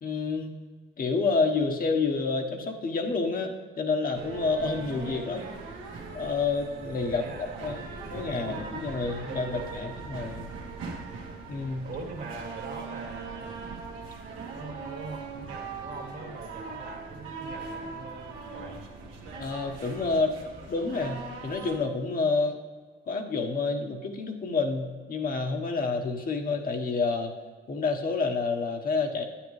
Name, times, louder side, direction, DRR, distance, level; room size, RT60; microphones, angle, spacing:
voice 1, 0.0-0.5 1.0-5.5 6.1-7.8 8.1-10.5 11.5-11.9 19.4-20.4 20.7-22.6 23.1-27.3 27.7-29.2, left 4 dB, 45° left, 3 dB, 1.1 m, -29 dB
sound 1, 4.1-21.8, right 4 dB, 85° right, 1.5 m, -40 dB
voice 2, 5.1-5.6 7.1-8.8 9.3-9.9 11.8-13.6 14.5-18.8, right 3 dB, 60° right, 2 dB, 2.0 m, -42 dB
10.0 x 8.6 x 3.2 m, 1.5 s
cardioid pair, 90°, 20 cm